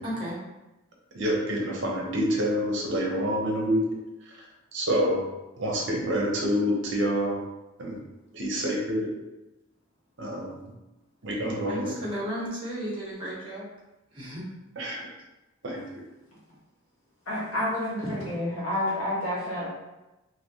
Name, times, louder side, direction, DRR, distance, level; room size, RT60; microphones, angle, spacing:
voice 1, 0.0-0.4 11.4-13.6 14.1-14.4, equal, 25° right, -6 dB, 1.1 m, -34 dB
voice 2, 1.1-3.8 4.7-5.2 5.6-7.4 7.8-7.9 8.3-9.1 10.2-10.6 11.2-11.9 14.8-15.0 15.6-15.8, equal, 60° right, -2 dB, 0.7 m, -27 dB
voice 3, 17.3-19.7, left 1 dB, 90° left, -7 dB, 1.3 m, -29 dB
3.3 x 2.6 x 2.7 m, 0.98 s
head